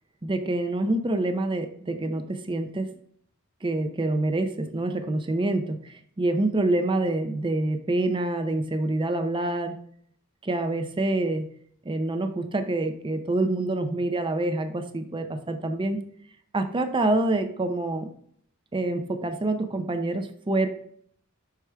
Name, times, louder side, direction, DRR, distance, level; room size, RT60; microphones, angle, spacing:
voice 1, 0.2-2.9 3.6-9.8 10.4-11.5 11.8-16.0 16.5-18.1 18.7-20.7, right 2 dB, 25° right, 7 dB, 0.6 m, -26 dB
5.9 x 4.8 x 3.3 m, 0.63 s
head